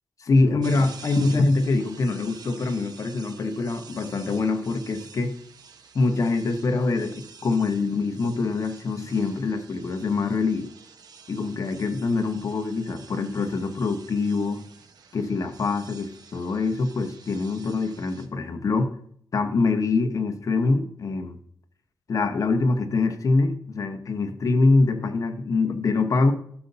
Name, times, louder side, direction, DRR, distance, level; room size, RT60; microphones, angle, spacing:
voice 1, 0.2-5.4 5.9-10.7 11.3-14.6 15.1-18.9 19.3-21.4 22.1-26.3, left 3 dB, 50° left, 1.0 m, -24 dB
sound 1, 0.6-18.3, right 5 dB, 65° right, 1.0 m, -48 dB
14.0 x 6.8 x 2.7 m
wide cardioid pair, 130°, 7 cm